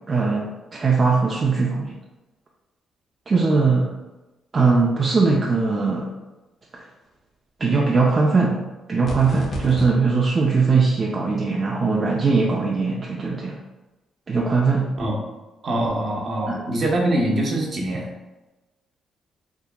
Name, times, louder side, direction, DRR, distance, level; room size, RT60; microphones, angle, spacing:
voice 1, 0.1-1.9 3.3-3.9 4.5-6.1 6.7-6.8 7.6-8.6 8.9-13.5 14.3-14.9 16.5-16.6, right 4 dB, 35° right, -3 dB, 0.4 m, -20 dB
sound 1, 9.0-9.9, equal, 55° left, 0.8 m, -31 dB
voice 2, 15.6-18.1, right 1 dB, 50° right, -2 dB, 0.8 m, -23 dB
3.5 x 2.8 x 2.2 m, 1.1 s
cardioid pair, 90°, 0 cm